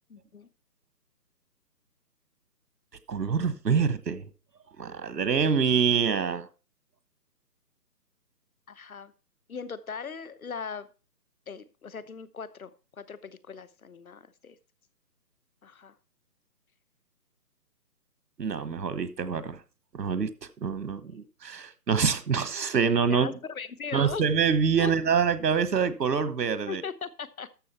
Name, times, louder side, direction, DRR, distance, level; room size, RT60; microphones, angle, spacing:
voice 1, 0.1-0.5 8.7-9.1 9.5-10.9 11.5-14.6 15.6-15.9 21.0-21.1 23.1-24.2 24.8-24.9 26.7-27.5, left 6 dB, 60° left, 16 dB, 1.0 m, -39 dB
voice 2, 3.1-4.3 4.8-6.5 18.4-19.6 19.9-23.4 23.9-26.8, right 6 dB, 90° right, 14 dB, 1.3 m, -26 dB
13.0 x 6.3 x 4.3 m, 0.33 s
hypercardioid pair, 180°, 47 cm